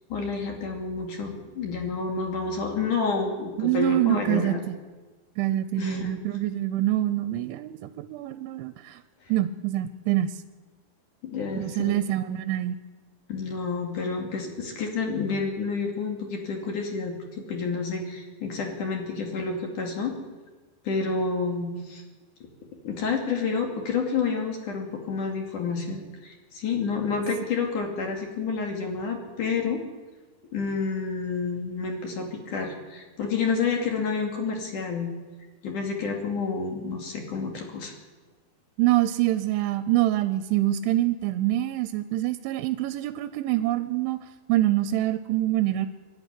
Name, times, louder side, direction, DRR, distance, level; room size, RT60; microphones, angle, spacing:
voice 1, 0.1-4.6 5.8-6.1 11.2-12.0 13.3-20.1 20.8-22.0 22.8-29.8 30.5-35.1 35.6-37.9, left 5 dB, 50° left, 2 dB, 3.6 m, -29 dB
voice 2, 3.6-4.8 5.4-9.0 9.3-10.4 11.6-12.8 38.8-45.9, right 14 dB, 85° right, 11 dB, 3.1 m, -25 dB
24.0 x 11.5 x 10.0 m, 1.3 s
omnidirectional pair, 5.3 m